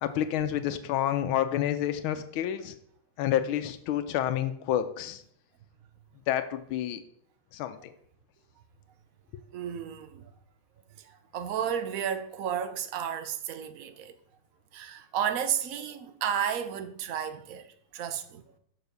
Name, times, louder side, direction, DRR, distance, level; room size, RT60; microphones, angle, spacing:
voice 1, 0.0-2.7 3.2-5.2 6.3-7.0 7.5-7.9, left 11 dB, 85° left, 1.4 m, -29 dB
voice 2, 9.5-10.3 11.0-14.2 14.7-17.7 17.9-18.4, right 8 dB, 70° right, 0.8 m, -32 dB
6.9 x 4.5 x 6.5 m
omnidirectional pair, 2.3 m